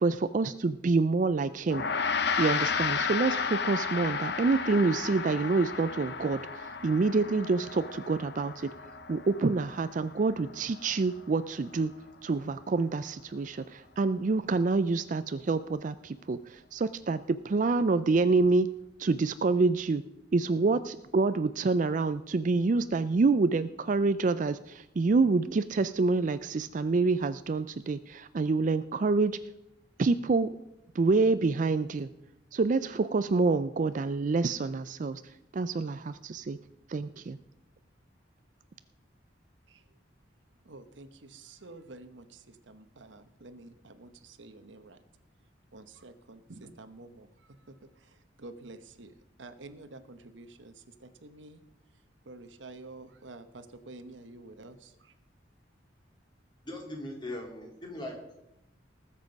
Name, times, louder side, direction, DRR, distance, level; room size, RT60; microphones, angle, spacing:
voice 1, 0.0-2.1 2.4-8.7 9.1-11.9 12.2-18.7 19.0-20.0 20.3-29.4 30.0-30.6 30.9-32.1 32.5-35.2 35.5-36.6 36.9-37.4, right 3 dB, 40° right, 0.4 m, -27 dB
Gong, 1.7-11.2, left 5 dB, 60° left, 0.8 m, -33 dB
voice 2, 40.6-45.0 45.7-49.1 49.4-51.6 52.2-55.1, right 2 dB, 80° right, 1.1 m, -49 dB
voice 3, 56.6-58.1, left 1 dB, 25° left, 3.3 m, -39 dB
19.5 x 7.5 x 5.2 m
head